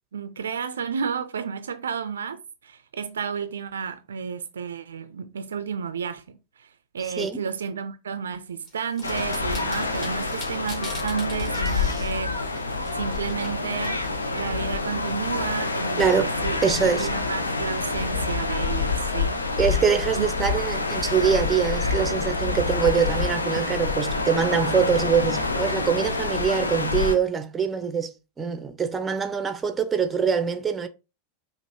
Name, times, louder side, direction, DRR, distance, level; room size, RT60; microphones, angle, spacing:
voice 1, 0.1-12.4 12.9-14.1 14.3-16.6 17.0-19.4 20.2-20.5, right 6 dB, 65° right, 0.4 m, -32 dB
sound 1, 8.7-15.5, left 2 dB, 30° left, 2.2 m, -44 dB
sound 2, 9.0-27.2, left 3 dB, 80° left, 0.5 m, -27 dB
voice 2, 16.0-16.3 16.6-17.1 19.6-30.9, right 6 dB, 15° right, 0.5 m, -24 dB
5.2 x 2.5 x 2.7 m
figure-of-eight pair, 90°, 0 cm